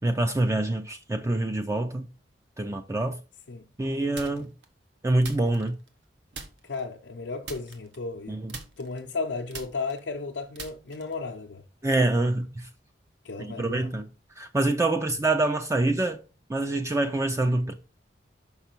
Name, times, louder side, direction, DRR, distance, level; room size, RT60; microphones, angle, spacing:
voice 1, 0.0-2.1 2.6-3.2 3.8-4.5 5.0-5.7 8.3-8.5 11.8-12.7 13.4-14.1 14.4-16.2 16.5-17.7, right 2 dB, 15° right, 0.4 m, -26 dB
sound 1, 4.2-4.7 5.2-6.0 6.3-6.8 7.4-8.2 8.5-11.3, right 4 dB, 75° right, 1.1 m, -42 dB
voice 2, 6.6-8.4 8.8-11.6 13.2-13.9, left 4 dB, 80° left, 0.7 m, -34 dB
5.7 x 5.6 x 4.4 m
head